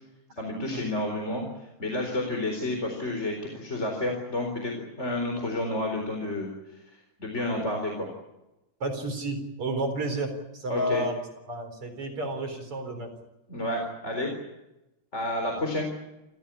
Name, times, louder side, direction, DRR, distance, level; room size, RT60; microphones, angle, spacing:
voice 1, 0.4-1.4 1.8-6.5 7.2-8.1 10.7-11.0 13.5-14.3 15.1-15.9, left 1 dB, 15° left, 2 dB, 3.9 m, -30 dB
voice 2, 8.8-11.1 11.5-13.1, right 1 dB, 35° right, 5 dB, 4.5 m, -31 dB
28.5 x 15.5 x 10.0 m, 0.98 s
omnidirectional pair, 4.8 m